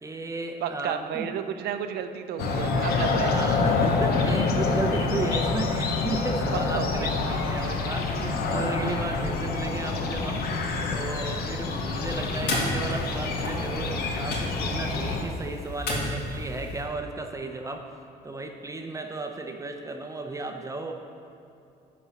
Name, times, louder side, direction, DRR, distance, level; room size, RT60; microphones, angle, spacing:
voice 1, 0.0-1.3 3.3-10.5 10.9-17.9 18.2-20.9, right 2 dB, 20° right, 4 dB, 0.6 m, -34 dB
voice 2, 0.6-3.3 6.7-7.1, right 9 dB, 70° right, 8 dB, 0.7 m, -32 dB
sound 1, 2.4-15.2, left 3 dB, 65° left, 1.0 m, -27 dB
sound 2, 12.0-16.8, left 1 dB, 90° left, 2.4 m, -33 dB
10.5 x 4.3 x 7.0 m, 2.7 s
cardioid pair, 110°, 17 cm